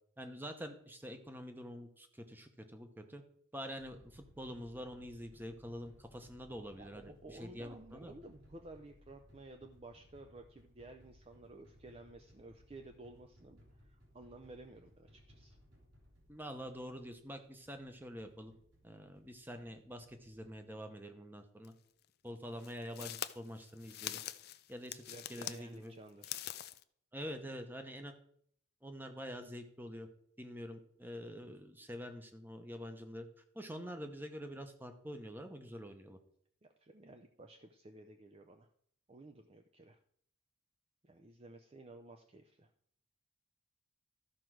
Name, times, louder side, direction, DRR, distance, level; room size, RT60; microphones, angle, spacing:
voice 1, 0.2-3.2 3.5-8.1 16.3-18.5 18.8-21.7 22.2-24.2 24.7-25.9 27.1-28.1 28.8-30.1 30.4-33.3 33.5-36.2, equal, 10° right, 6 dB, 0.9 m, -46 dB
sound 1, 3.8-20.5, equal, 60° right, 3.2 m, -63 dB
voice 2, 6.8-15.6 25.1-26.4 36.6-38.7 39.1-40.0 41.0-42.7, right 2 dB, 25° right, 5 dB, 0.5 m, -54 dB
sound 2, 21.6-21.7 22.6-25.6 26.1-26.8, left 12 dB, 45° left, 0.4 m, -43 dB
13.0 x 4.6 x 6.2 m, 0.66 s
head